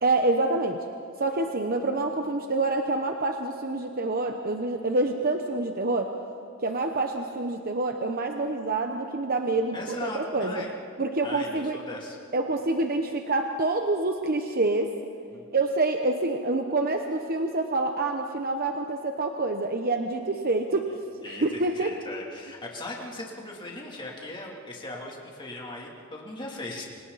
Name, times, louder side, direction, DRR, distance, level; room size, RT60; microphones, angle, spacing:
voice 1, 0.0-0.8 1.2-6.1 6.6-10.6 11.0-11.8 12.3-14.9 15.5-20.9 21.3-21.9, right 2 dB, 45° right, 4 dB, 1.1 m, -27 dB
voice 2, 9.7-10.7 11.2-12.2 15.3-15.4 20.9-21.0 21.2-26.8, left 2 dB, 25° left, -2 dB, 3.2 m, -38 dB
29.5 x 26.5 x 4.2 m, 2.5 s
head